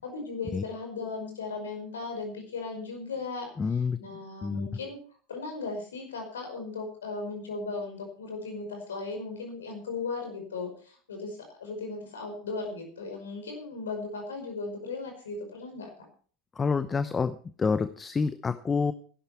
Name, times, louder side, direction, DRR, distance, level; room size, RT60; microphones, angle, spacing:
voice 1, 0.0-5.0 5.3-15.9, left 3 dB, 75° left, 4 dB, 5.4 m, -37 dB
voice 2, 3.6-4.0 4.4-4.7 16.6-18.9, left 5 dB, 20° left, 13 dB, 0.8 m, -28 dB
15.5 x 11.5 x 4.5 m, 0.43 s
figure-of-eight pair, 75°, 0 cm